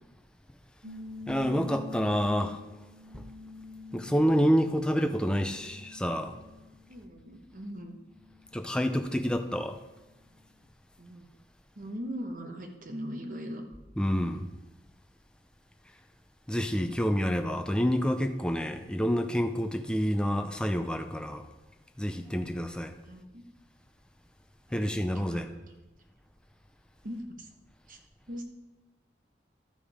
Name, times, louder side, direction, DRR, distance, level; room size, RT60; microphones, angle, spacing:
sound 1, 0.8-6.9 7.3-8.7, left 4 dB, 80° right, 1.6 m, -47 dB
voice 1, 1.3-2.6 3.1-3.2 3.9-6.4 8.5-9.8 14.0-14.4 16.5-21.4 22.0-22.9 24.7-25.5, equal, 5° left, 0.5 m, -28 dB
voice 2, 6.9-8.0 11.0-11.3 11.7-13.6 23.1-23.4 24.7-25.4 27.0-27.5 27.9-28.0 28.3-28.4, equal, 50° right, 1.1 m, -40 dB
12.0 x 5.3 x 4.9 m
head